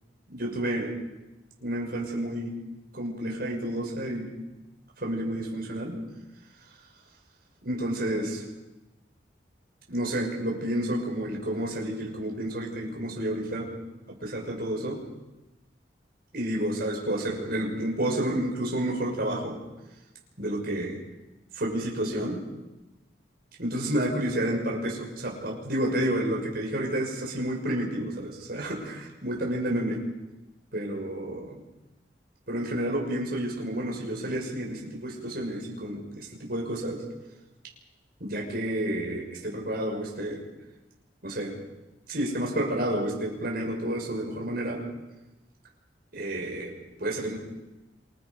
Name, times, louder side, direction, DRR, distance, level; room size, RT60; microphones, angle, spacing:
voice 1, 0.3-0.9 1.6-2.5 2.9-4.3 5.0-6.0 7.6-8.4 9.9-13.7 14.1-15.0 16.3-19.6 20.4-21.0 21.5-22.4 23.6-30.0 30.7-31.6 32.5-37.0 38.2-40.4 41.2-41.6 42.1-44.8 46.1-46.7 47.0-47.4, right 1 dB, 55° right, -1 dB, 6.1 m, -30 dB
27.0 x 26.0 x 5.5 m, 1.0 s
head